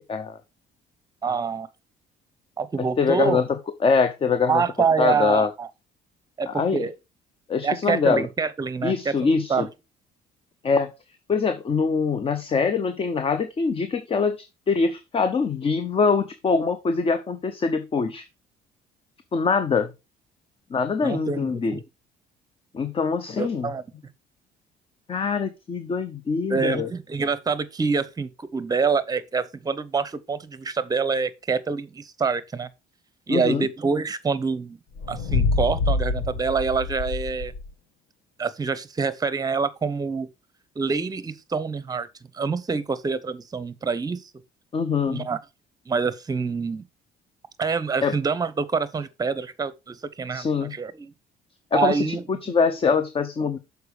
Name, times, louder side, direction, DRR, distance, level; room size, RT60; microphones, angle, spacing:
voice 1, 1.2-1.7 2.6-3.4 4.5-5.7 6.4-6.9 7.6-9.7 21.0-21.8 23.4-23.8 26.5-32.7 33.3-34.8 35.1-37.5 38.4-40.3 40.8-42.1 42.3-44.2 45.1-45.4 45.9-46.9 47.6-51.1 51.7-52.4, right 5 dB, 20° right, 0.8 m, -26 dB
voice 2, 3.0-3.4 3.8-4.6 5.0-5.5 6.5-6.9 7.5-8.3 8.8-9.7 10.6-10.9 11.3-18.2 19.3-19.9 20.7-21.8 22.7-23.7 25.1-26.9 33.3-33.7 44.7-45.3 48.0-48.1 50.3-50.7 51.7-53.6, left 5 dB, 35° left, 0.8 m, -23 dB
sound 1, 34.9-37.7, left 3 dB, 85° left, 1.4 m, -26 dB
6.8 x 4.7 x 4.9 m
cardioid pair, 110°, 17 cm